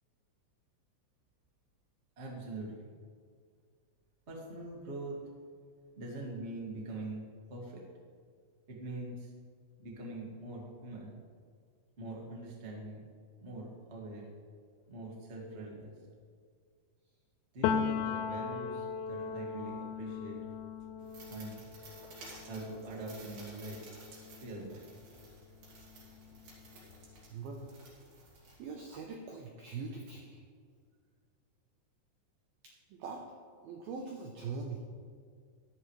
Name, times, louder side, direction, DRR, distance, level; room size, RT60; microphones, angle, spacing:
voice 1, 2.2-2.7 4.3-5.2 6.0-7.2 7.5-7.8 8.7-9.3 9.8-11.1 12.0-13.1 13.4-14.3 14.9-15.9 17.5-20.4 21.3-21.6 22.5-23.8 24.4-24.8, right 2 dB, 40° right, -3 dB, 0.9 m, -43 dB
Piano, 17.6-25.2 25.6-27.1, left 6 dB, 85° left, 2.5 m, -38 dB
sound 1, 21.0-29.1, right 2 dB, 55° right, 4.2 m, -54 dB
voice 2, 27.3-27.7 28.6-30.4 32.6-33.2 33.6-34.9, right 4 dB, 80° right, 1 dB, 2.2 m, -42 dB
14.0 x 11.0 x 3.3 m, 2.1 s
omnidirectional pair, 5.4 m